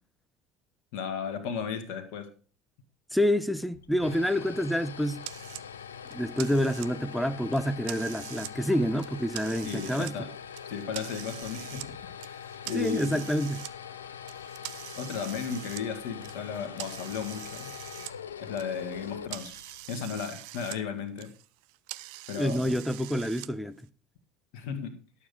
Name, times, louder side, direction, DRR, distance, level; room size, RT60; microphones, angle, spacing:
voice 1, 0.9-2.3 9.6-10.3 10.6-13.2 14.9-17.8 18.4-19.5 19.9-21.3 22.3-22.8 24.5-24.9, left 7 dB, 60° left, 1.5 m, -35 dB
voice 2, 3.1-5.2 6.1-10.1 12.7-13.6 22.3-23.8, equal, ahead, 0.7 m, -28 dB
sound 1, 3.7-19.9, left 8 dB, 80° left, 0.6 m, -43 dB
sound 2, 5.2-5.6 6.1-7.1 7.5-8.5 8.9-10.1 10.5-11.9 12.2-13.7 14.3-18.1 18.4-20.8 21.1-23.5, right 19 dB, 60° right, 0.5 m, -43 dB
11.5 x 7.0 x 5.0 m
figure-of-eight pair, 65°, 0 cm